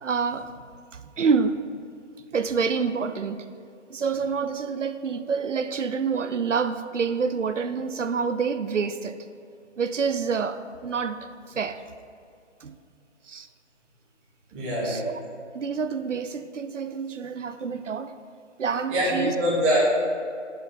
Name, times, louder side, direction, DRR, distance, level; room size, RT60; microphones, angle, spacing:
voice 1, 0.0-0.5 0.9-1.6 2.3-3.4 3.9-9.2 9.8-11.2 11.5-11.8 12.6-12.7 13.3-13.5 14.8-15.1 15.5-18.1 18.6-19.3, right 5 dB, 80° right, 10 dB, 0.7 m, -27 dB
voice 2, 14.5-15.0 18.9-19.8, equal, 10° right, -11 dB, 1.3 m, -24 dB
7.8 x 7.1 x 5.1 m, 2.4 s
figure-of-eight pair, 160°, 36 cm